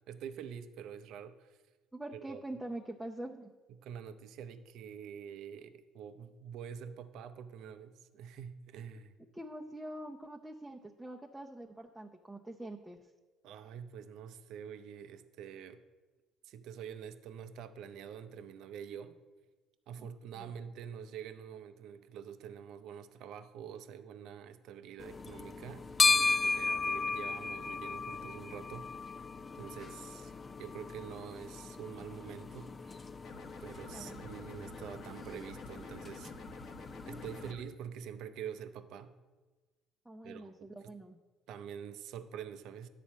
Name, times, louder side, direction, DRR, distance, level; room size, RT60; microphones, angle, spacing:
voice 1, 0.0-1.6 2.1-2.4 3.7-9.1 13.4-15.8 16.4-19.2 19.9-28.9 29.5-30.3 30.6-33.0 33.6-36.3 37.1-39.1 40.2-40.9 41.5-42.9, right 8 dB, 70° right, 10 dB, 0.5 m, -46 dB
voice 2, 1.9-3.5 9.3-13.1 20.0-20.5 33.9-34.2 40.0-41.2, right 1 dB, 10° right, 0 dB, 0.6 m, -45 dB
sound 1, 25.0-37.5, left 4 dB, 30° left, 0.4 m, -36 dB
sound 2, 33.2-37.6, left 2 dB, 60° left, 0.9 m, -50 dB
10.5 x 4.2 x 7.3 m, 1.3 s
supercardioid pair, 85°, 0 cm